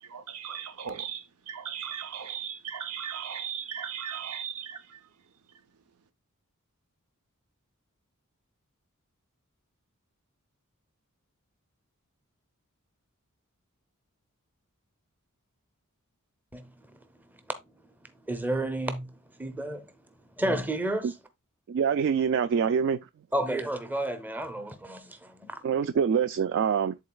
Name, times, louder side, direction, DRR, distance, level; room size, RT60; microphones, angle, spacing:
voice 1, 0.0-5.0, right 8 dB, 85° right, 0.7 m, -37 dB
voice 2, 16.5-17.6 18.0-19.9 20.4-21.2 23.3-25.6, right 1 dB, 10° right, 0.7 m, -32 dB
voice 3, 21.7-23.0 25.6-27.0, right 7 dB, 55° right, 0.3 m, -25 dB
11.0 x 3.8 x 2.3 m
head